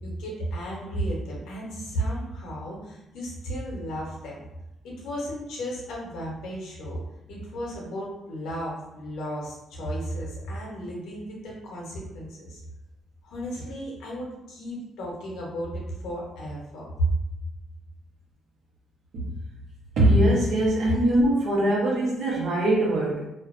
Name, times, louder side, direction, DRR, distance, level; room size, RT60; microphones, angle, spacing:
voice 1, 0.0-4.4 4.8-7.0 7.3-12.6 13.2-17.1, right 1 dB, 85° left, -3 dB, 0.8 m, -34 dB
voice 2, 20.0-23.2, right 1 dB, 70° right, -3 dB, 0.8 m, -22 dB
2.5 x 2.2 x 2.4 m, 0.90 s
cardioid pair, 90°, 0 cm